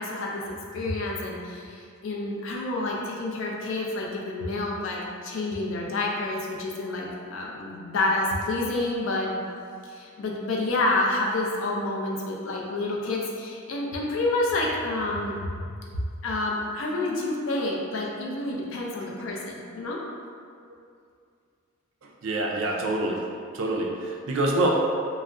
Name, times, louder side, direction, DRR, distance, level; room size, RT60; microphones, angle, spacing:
voice 1, 0.0-9.4 9.8-15.4 16.2-20.0, left 2 dB, 65° left, -2 dB, 0.4 m, -29 dB
voice 2, 22.0-23.3 23.5-24.7, right 2 dB, 60° right, 0 dB, 0.4 m, -26 dB
2.3 x 2.0 x 3.5 m, 2.3 s
head